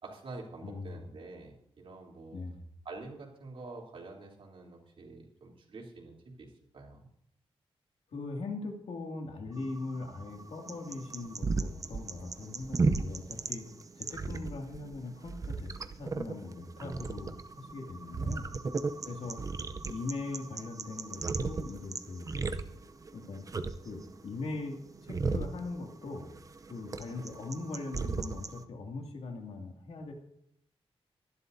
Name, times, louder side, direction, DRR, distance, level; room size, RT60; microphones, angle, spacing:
voice 1, 0.0-2.4 2.8-7.1 19.0-19.5, right 3 dB, 60° right, -1 dB, 3.4 m, -47 dB
voice 2, 0.6-1.0 2.3-2.6 8.1-18.5 19.0-19.4 19.8-22.4 23.1-23.4 23.8-26.3 26.7-30.1, left 3 dB, 80° left, 1 dB, 2.5 m, -40 dB
sound 1, 9.6-28.6, right 4 dB, 35° right, 0.7 m, -36 dB
24.5 x 11.5 x 2.7 m, 0.74 s
wide cardioid pair, 180°, 10 cm